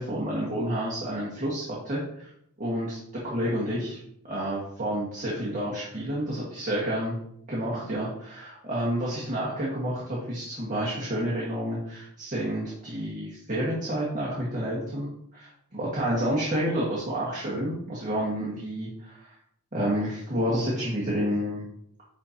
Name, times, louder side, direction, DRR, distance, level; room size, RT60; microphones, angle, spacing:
voice 1, 0.0-2.3 2.6-4.0 4.3-7.1 7.5-19.2 19.7-21.6, equal, 35° right, -7 dB, 1.7 m, -29 dB
9.5 x 4.3 x 2.9 m, 0.72 s
head